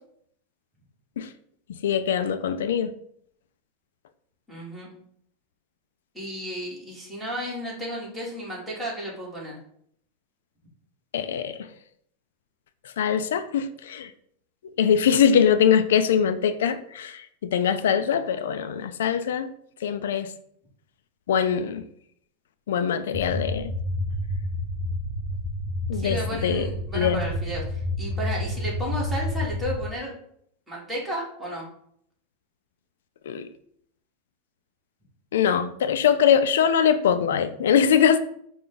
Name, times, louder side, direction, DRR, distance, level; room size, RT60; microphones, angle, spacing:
voice 1, 1.7-2.9 11.1-11.7 12.8-14.1 14.8-19.5 19.8-20.3 21.3-21.8 22.7-23.7 25.9-26.7 26.9-27.3 33.3-33.5 35.3-38.2, left 8 dB, 90° left, 0.3 m, -22 dB
voice 2, 4.5-4.9 6.1-9.6 25.9-30.1 30.7-31.7, equal, 5° right, 1.6 m, -33 dB
sound 1, 23.1-29.9, left 1 dB, 40° right, 0.6 m, -29 dB
4.9 x 2.2 x 3.9 m
supercardioid pair, 135°, 0 cm